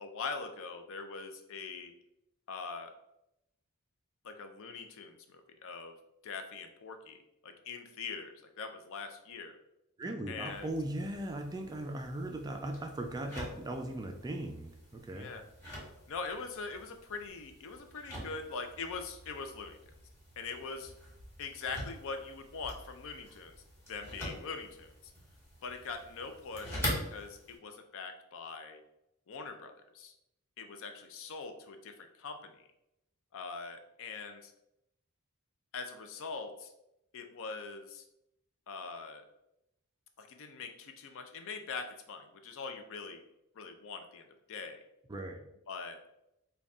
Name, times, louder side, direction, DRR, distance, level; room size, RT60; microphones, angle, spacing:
voice 1, 0.0-1.9 2.5-2.9 4.2-5.9 6.2-9.6 10.3-10.7 15.1-15.4 16.1-19.8 20.4-20.9 21.4-23.5 23.9-24.9 25.6-28.8 29.3-30.1 30.6-32.6 33.3-34.5 35.7-36.7 37.1-38.0 38.7-39.2 40.2-43.2 43.6-44.8 45.7-46.0, left 4 dB, 60° left, 7 dB, 0.5 m, -42 dB
voice 2, 10.0-15.3 45.1-45.4, right 1 dB, 15° right, 4 dB, 0.3 m, -38 dB
sound 1, 10.5-27.6, equal, 10° left, 1.2 m, -45 dB
3.9 x 2.3 x 3.5 m, 0.82 s
head